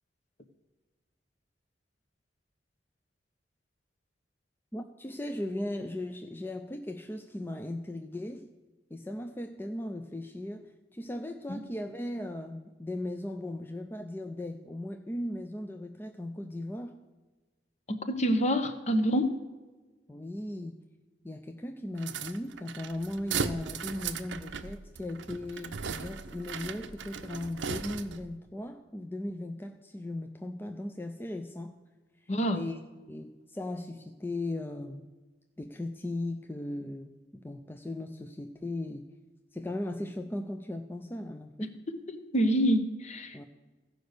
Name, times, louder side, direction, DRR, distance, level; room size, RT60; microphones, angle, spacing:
voice 1, 4.7-8.5 8.9-17.0 20.1-20.8 21.2-31.8 32.5-32.8 33.1-35.1 35.6-39.1 39.5-41.7 43.3-43.4, left 1 dB, 10° left, 5 dB, 0.5 m, -37 dB
voice 2, 17.9-19.4 32.3-32.7 41.6-43.4, equal, 40° left, 9 dB, 0.9 m, -27 dB
sound 1, 22.0-28.3, right 6 dB, 80° right, 0.6 m, -37 dB
15.5 x 5.2 x 6.6 m, 1.2 s
head